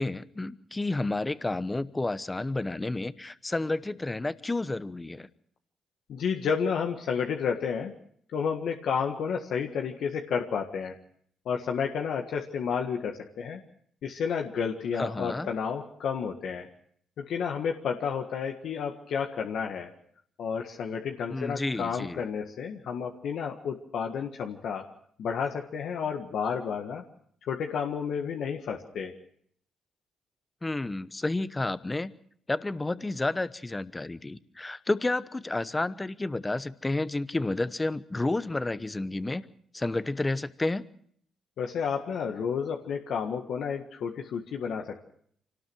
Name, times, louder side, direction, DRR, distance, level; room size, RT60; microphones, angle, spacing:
voice 1, 0.0-5.3 14.9-15.5 21.3-22.2 30.6-32.1 32.5-39.4 39.7-40.8, left 2 dB, 15° left, 15 dB, 1.0 m, -30 dB
voice 2, 6.1-7.9 8.3-10.9 11.4-13.6 14.0-16.7 17.2-19.9 20.4-24.8 25.2-27.0 27.5-29.1 41.6-45.0, left 6 dB, 70° left, 3 dB, 1.7 m, -31 dB
25.0 x 18.5 x 6.3 m, 0.64 s
cardioid pair, 90°, 0 cm